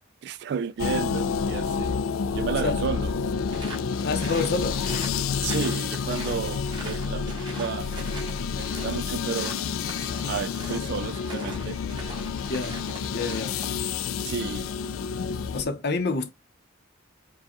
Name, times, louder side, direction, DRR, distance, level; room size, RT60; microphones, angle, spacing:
voice 1, 0.2-2.0 2.3-3.1 5.4-7.9 8.6-9.5 10.1-11.8 14.2-14.7, right 7 dB, 55° right, 0.3 m, -32 dB
sound 1, 0.8-15.6, left 6 dB, 90° left, 0.4 m, -29 dB
sound 2, 3.5-13.8, right 2 dB, 25° right, 1.1 m, -42 dB
voice 2, 4.0-4.8 12.5-12.8 13.1-13.6 15.5-16.3, left 3 dB, 55° left, 0.7 m, -27 dB
4.7 x 2.2 x 2.9 m
head